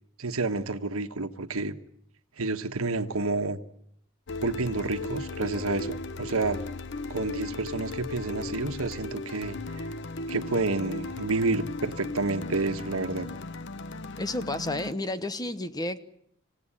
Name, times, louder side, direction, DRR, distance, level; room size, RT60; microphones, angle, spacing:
voice 1, 0.2-1.8 2.4-3.6 4.4-6.6 7.1-9.9 10.3-13.3, right 3 dB, 80° right, 8 dB, 1.4 m, -29 dB
sound 1, 4.3-14.9, left 3 dB, 55° left, 0.9 m, -36 dB
voice 2, 14.2-16.0, left 2 dB, 20° left, 12 dB, 1.0 m, -31 dB
27.0 x 17.0 x 9.9 m, 0.70 s
head